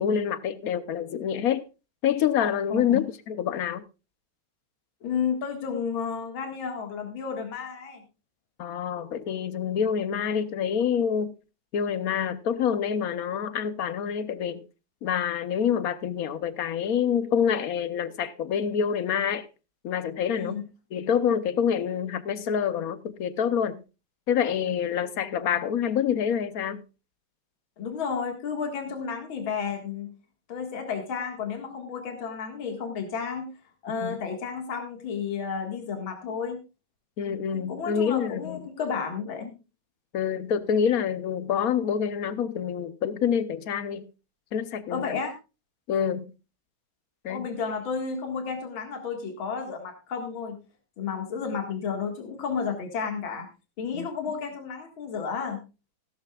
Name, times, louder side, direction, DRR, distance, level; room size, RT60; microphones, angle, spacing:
voice 1, 0.0-1.6 2.0-3.8 8.6-11.3 11.7-14.7 15.0-19.5 19.8-20.6 20.9-23.8 24.3-26.8 34.0-34.2 37.2-38.6 40.1-44.1 44.5-45.2 45.9-46.3 47.2-47.5 53.9-54.1, left 8 dB, 60° left, 1.0 m, -27 dB
voice 2, 2.7-3.0 5.0-8.0 20.3-20.6 27.8-30.1 30.5-33.5 33.8-36.6 37.2-39.5 44.9-45.3 47.3-50.6 51.0-53.5 53.8-55.6, left 6 dB, 80° left, 2.6 m, -32 dB
16.0 x 13.0 x 2.4 m
omnidirectional pair, 2.2 m